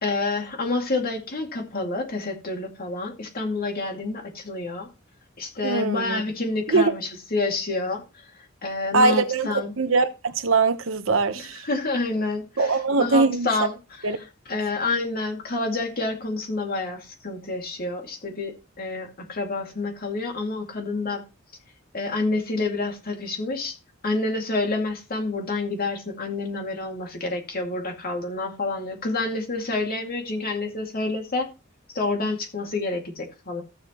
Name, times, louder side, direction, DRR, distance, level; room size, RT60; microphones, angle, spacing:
voice 1, 0.0-4.9 5.4-8.0 8.6-9.7 11.4-14.2 14.5-21.2 21.9-23.7 24.0-31.5 31.9-33.6, left 3 dB, 45° left, 2.3 m, -28 dB
voice 2, 5.6-6.2 6.7-6.9 8.9-11.6 12.6-13.5 14.0-14.2, right 3 dB, 70° right, 1.0 m, -22 dB
14.5 x 7.5 x 3.0 m
head